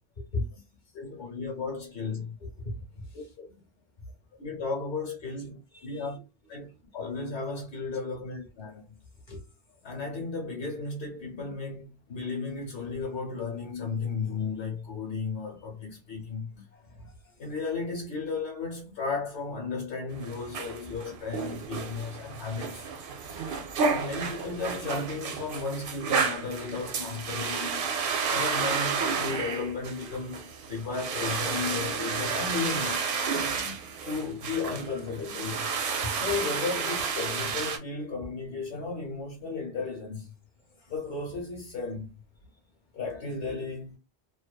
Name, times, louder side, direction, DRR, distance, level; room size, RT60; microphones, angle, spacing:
voice 1, 0.9-2.4 3.1-3.5 4.4-6.2 6.5-6.7 6.9-9.0 9.8-16.5 17.4-22.9 23.9-27.9 28.3-33.1 34.0-35.7 36.1-40.3 40.9-42.1 42.9-44.0, left 4 dB, 75° left, 1.1 m, -34 dB
voice 2, 2.6-3.1 5.7-6.2 9.3-9.4 11.4-11.5 16.5-16.6 17.0-17.3 21.5-21.6 31.5-31.6 32.1-32.2 33.4-34.1 36.0-36.1 40.8-40.9, left 2 dB, 50° left, 0.8 m, -38 dB
sound 1, 20.1-37.8, right 5 dB, 60° right, 0.7 m, -31 dB
2.6 x 2.2 x 2.2 m
omnidirectional pair, 1.1 m